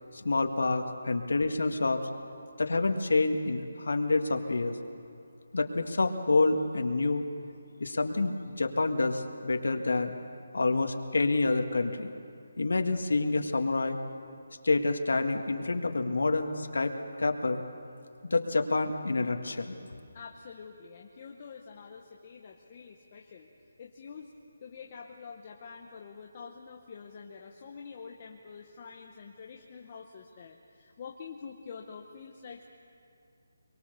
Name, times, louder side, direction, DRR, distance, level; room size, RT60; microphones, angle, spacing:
voice 1, 0.1-2.0 2.6-4.8 5.5-7.2 7.8-10.1 10.5-12.1 12.6-14.0 14.6-16.9 17.2-17.6 18.3-19.8, left 3 dB, 75° left, 5 dB, 2.0 m, -28 dB
voice 2, 20.1-23.5 23.8-24.3 24.6-32.6, left 6 dB, 20° left, 1 dB, 0.8 m, -46 dB
24.5 x 23.0 x 6.9 m, 2.4 s
hypercardioid pair, 180°, 0 cm